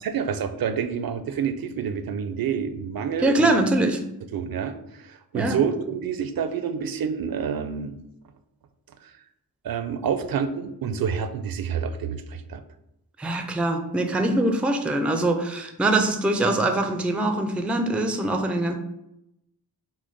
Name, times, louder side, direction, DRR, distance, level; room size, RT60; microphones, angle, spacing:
voice 1, 0.0-3.6 4.3-8.0 9.0-9.2 9.6-12.6, right 7 dB, 65° right, 10 dB, 0.5 m, -28 dB
voice 2, 3.2-4.0 5.3-5.6 13.2-18.8, right 2 dB, 5° right, 6 dB, 0.3 m, -23 dB
6.1 x 2.1 x 3.8 m, 0.83 s
wide cardioid pair, 130°, 39 cm